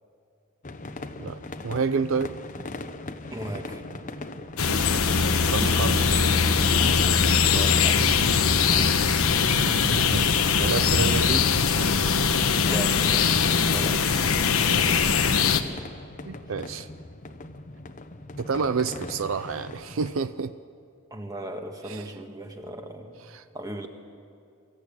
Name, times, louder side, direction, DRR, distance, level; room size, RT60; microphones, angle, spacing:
sound 1, 0.6-20.1, left 2 dB, 35° left, 0.9 m, -39 dB
voice 1, 1.2-2.3 5.5-6.1 9.9-11.5 14.7-15.0 16.2-16.9 18.4-20.5 21.9-22.0 23.3-23.4, right 5 dB, 65° right, 13 dB, 0.5 m, -29 dB
voice 2, 3.3-3.8 7.4-8.0 12.6-14.0 21.1-23.2 23.5-23.9, right 1 dB, 15° right, 4 dB, 1.6 m, -37 dB
sound 2, 4.6-15.6, left 6 dB, 90° left, 1.1 m, -21 dB
sound 3, 4.7-11.7, right 1 dB, 45° right, 1.9 m, -35 dB
24.0 x 14.5 x 8.7 m, 2.5 s
head